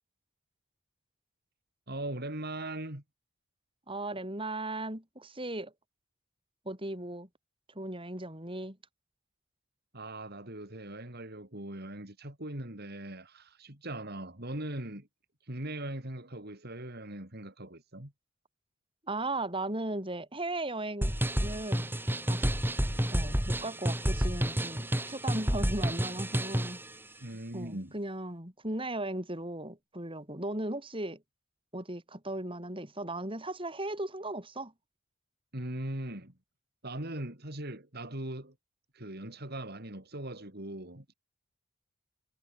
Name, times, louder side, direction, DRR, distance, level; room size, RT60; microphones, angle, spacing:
voice 1, 1.9-3.0 9.9-15.1 15.4-18.1 27.2-27.9 35.5-36.3 36.8-38.5 38.9-41.1, right 1 dB, 50° right, 4.2 m, -40 dB
voice 2, 3.9-5.7 6.6-7.3 7.7-8.8 19.1-21.1 21.4-21.9 22.3-22.5 23.1-26.8 27.5-31.2 31.7-34.7, right 2 dB, 25° right, 7.6 m, -37 dB
sound 1, 21.0-26.8, equal, 10° right, 3.3 m, -30 dB
head